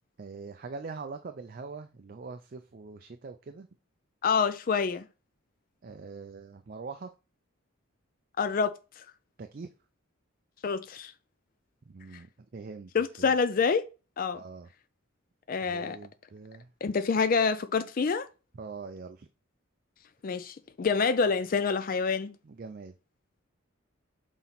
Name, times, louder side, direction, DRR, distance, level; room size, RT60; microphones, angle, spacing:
voice 1, 0.2-3.7 5.8-7.1 9.4-9.7 11.9-12.9 13.2-13.3 14.3-14.7 15.6-16.7 18.5-19.3 22.4-22.9, right 4 dB, 45° right, 0.4 m, -43 dB
voice 2, 4.2-5.0 8.4-9.0 10.6-11.1 12.9-13.8 14.2-14.4 15.5-16.0 16.8-18.3 20.2-22.4, left 5 dB, 40° left, 0.4 m, -27 dB
6.0 x 4.2 x 4.0 m
head